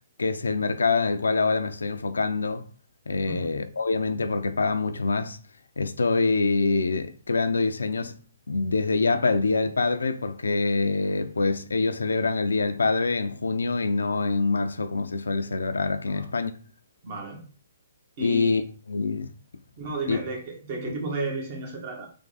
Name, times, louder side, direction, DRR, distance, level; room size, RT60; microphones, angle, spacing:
voice 1, 0.2-2.6 3.1-5.4 5.8-8.2 8.5-16.5 18.2-18.6 18.9-19.3 20.1-20.2, left 3 dB, 85° left, 0.4 m, -25 dB
voice 2, 17.0-17.4 18.2-18.6 19.8-22.1, right 3 dB, 45° right, 1.5 m, -33 dB
3.5 x 3.2 x 3.9 m
hypercardioid pair, 135°, 0 cm